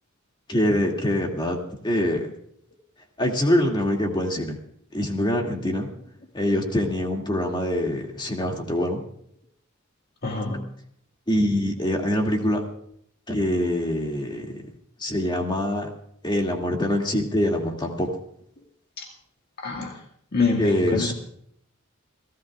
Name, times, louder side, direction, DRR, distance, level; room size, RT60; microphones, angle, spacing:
voice 1, 0.5-2.3 3.2-4.6 4.9-5.9 6.3-9.0 11.3-12.6 13.3-14.5 15.0-15.9 16.2-18.1 20.6-21.1, left 1 dB, 20° left, 1 dB, 2.5 m, -24 dB
voice 2, 10.2-10.6 19.0-19.1 19.6-20.0 20.3-21.1, left 3 dB, 50° left, 0 dB, 2.0 m, -26 dB
30.0 x 15.5 x 2.5 m, 0.68 s
head